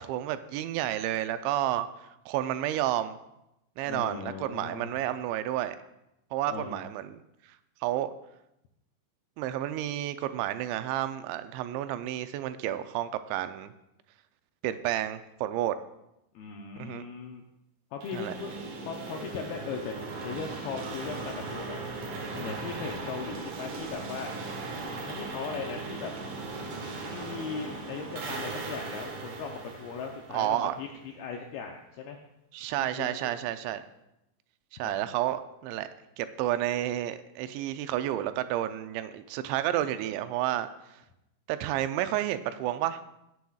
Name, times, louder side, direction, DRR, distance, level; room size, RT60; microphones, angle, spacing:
voice 1, 0.0-1.9 2.3-3.2 3.8-5.8 6.3-7.2 7.8-8.1 9.4-13.7 14.6-15.7 16.8-17.1 18.1-18.3 30.3-30.7 32.5-33.8 34.8-35.9 36.2-40.7 41.5-43.0, right 13 dB, 90° right, 11 dB, 2.8 m, -30 dB
voice 2, 3.8-4.9 6.5-6.9 16.4-17.4 17.9-18.6 18.8-21.8 22.3-24.3 25.0-26.1 27.1-32.2 32.8-33.3 34.8-34.9 39.8-39.9, left 6 dB, 85° left, 2 dB, 2.2 m, -38 dB
sound 1, 18.0-30.9, right 3 dB, 70° right, 1.6 m, -38 dB
17.0 x 7.8 x 2.3 m, 0.86 s
omnidirectional pair, 5.1 m